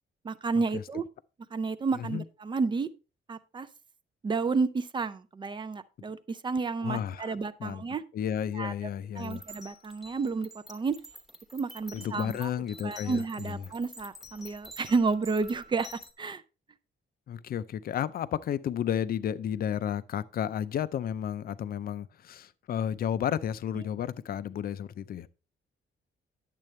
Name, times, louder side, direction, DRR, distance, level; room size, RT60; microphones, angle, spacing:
voice 1, 0.2-1.0 1.5-2.9 3.3-3.7 4.2-8.0 8.5-8.7 9.2-11.0 11.5-12.5 12.8-16.4, right 4 dB, 25° right, 0.4 m, -31 dB
voice 2, 6.8-7.8 8.1-9.4 11.9-13.6 17.3-25.3, left 9 dB, 45° left, 0.5 m, -32 dB
sound 1, 9.2-16.1, left 1 dB, ahead, 1.0 m, -49 dB
10.5 x 7.6 x 3.2 m
wide cardioid pair, 180°, 20 cm